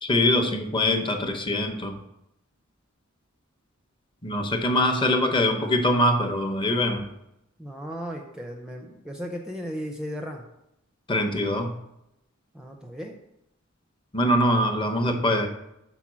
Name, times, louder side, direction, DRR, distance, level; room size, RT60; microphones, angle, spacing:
voice 1, 0.0-2.0 4.2-7.0 11.1-11.7 14.1-15.5, left 1 dB, 25° left, 5 dB, 0.8 m, -23 dB
voice 2, 7.6-10.5 12.5-13.2, equal, 5° right, 2 dB, 0.5 m, -35 dB
5.8 x 4.5 x 6.1 m, 0.83 s
head